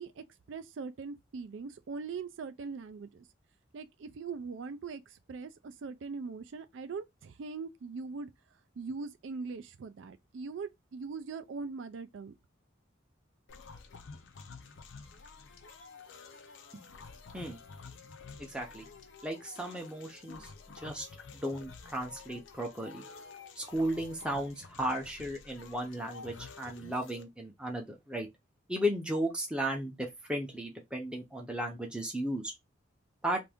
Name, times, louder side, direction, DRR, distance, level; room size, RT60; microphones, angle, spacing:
voice 1, 0.0-3.3 3.7-8.3 8.8-12.3, right 4 dB, 70° right, 0.4 m, -41 dB
sound 1, 13.5-27.2, left 4 dB, 70° left, 0.5 m, -50 dB
voice 2, 18.4-18.9 19.2-21.1 21.3-23.0 23.6-28.3 28.7-32.5 33.2-33.4, equal, 5° right, 0.6 m, -35 dB
2.6 x 2.5 x 3.4 m
head